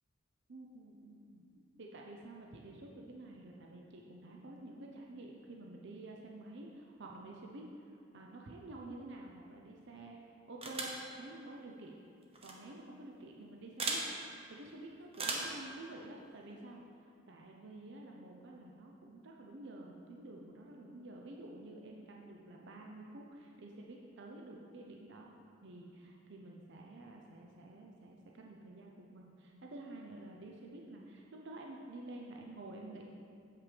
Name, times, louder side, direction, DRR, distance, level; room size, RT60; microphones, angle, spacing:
voice 1, 0.5-1.5 1.8-10.2 10.5-12.0 12.4-14.0 14.5-25.3 25.6-33.0, right 2 dB, 65° right, 0 dB, 0.7 m, -50 dB
sound 1, 10.6-11.0 12.3-12.5 13.8-14.0 15.1-15.6, right 3 dB, 30° right, 0.9 m, -36 dB
7.7 x 5.9 x 5.1 m, 2.4 s
head